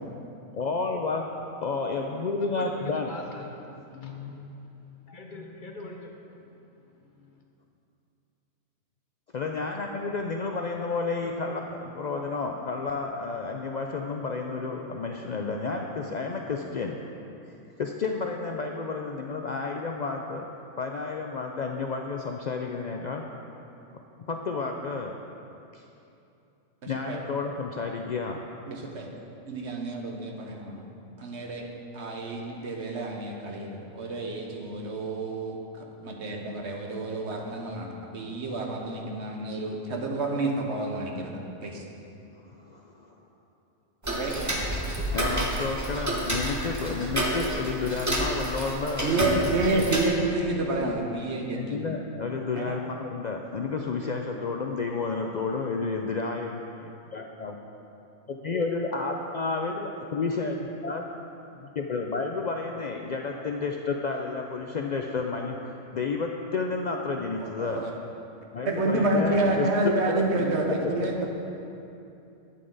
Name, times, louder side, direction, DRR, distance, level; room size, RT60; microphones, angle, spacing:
voice 1, 0.5-3.1 9.3-17.1 17.8-20.5 20.8-23.3 23.9-24.0 24.3-25.2 25.7-25.8 26.9-28.5 42.5-43.2 45.1-49.4 49.7-49.9 51.5-57.6 58.3-61.0 61.6-67.9 68.5-70.9, left 4 dB, 90° left, 2 dB, 0.3 m, -31 dB
voice 2, 2.4-4.7 5.1-6.4 7.0-7.4, left 2 dB, 45° left, 1 dB, 0.8 m, -42 dB
voice 3, 26.8-27.2 28.7-29.1 29.5-30.8 31.2-35.6 36.0-41.8 44.1-44.7 49.0-51.8 52.6-52.8 67.4-67.9 68.6-71.3, right 2 dB, 60° right, 1 dB, 1.2 m, -29 dB
Tick-tock, 44.0-50.0, right 1 dB, 15° right, 1.0 m, -29 dB
11.0 x 8.5 x 3.9 m, 2.7 s
omnidirectional pair, 1.4 m